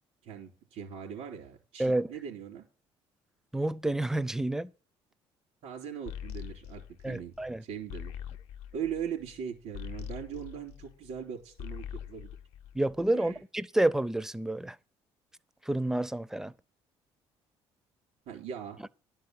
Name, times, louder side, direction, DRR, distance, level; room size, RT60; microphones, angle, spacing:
voice 1, 0.2-2.7 5.6-7.3 7.6-8.2 8.7-12.3 13.1-13.4 18.2-18.8, right 8 dB, 80° right, 3.2 m, -40 dB
voice 2, 3.5-4.7 7.0-7.6 12.8-14.8 15.7-16.5, right 1 dB, 5° right, 0.4 m, -29 dB
sound 1, 6.1-11.2 11.5-13.3, left 10 dB, 90° left, 0.7 m, -43 dB
11.5 x 4.7 x 7.9 m
cardioid pair, 115°, 11 cm